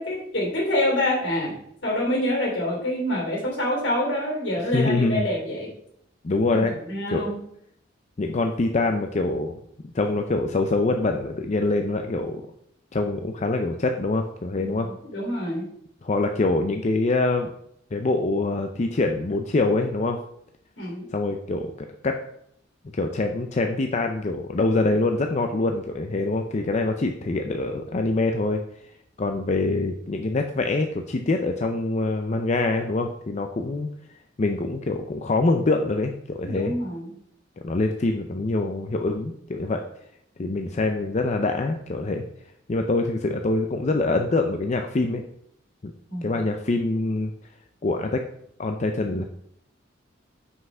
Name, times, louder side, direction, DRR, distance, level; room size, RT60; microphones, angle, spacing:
voice 1, 0.0-1.5 1.8-5.7 6.5-7.4 14.6-14.7 15.0-15.7 20.8-21.0 36.4-37.1 46.1-46.3, left 1 dB, 75° left, -2 dB, 3.2 m, -26 dB
voice 2, 4.7-5.3 6.2-6.8 7.1-7.3 8.2-9.6 9.9-12.4 12.9-14.9 16.0-17.5 17.9-20.2 21.1-22.2 22.9-28.6 29.2-33.9 34.4-36.7 37.6-39.8 40.4-42.2 42.7-45.2 45.8-45.9 46.2-47.3 47.8-48.2 48.6-49.2, left 2 dB, 40° left, 5 dB, 0.5 m, -24 dB
5.9 x 5.6 x 5.5 m, 0.70 s
head